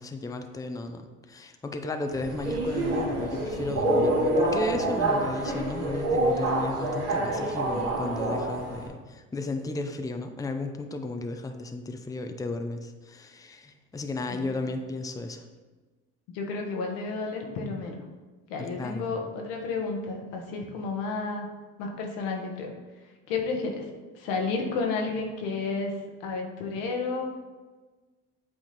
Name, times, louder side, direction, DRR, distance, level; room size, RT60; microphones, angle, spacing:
voice 1, 0.0-15.5 18.8-19.2, left 2 dB, 10° left, 6 dB, 0.5 m, -34 dB
Subway metro underground, 2.1-8.9, right 1 dB, 85° right, 1.6 m, -27 dB
voice 2, 16.3-18.0 18.5-21.5 21.8-22.7 23.3-23.9 24.1-25.9 26.2-27.3, left 4 dB, 85° left, 1 dB, 1.2 m, -31 dB
7.9 x 3.6 x 4.2 m, 1.3 s
supercardioid pair, 80°, 31 cm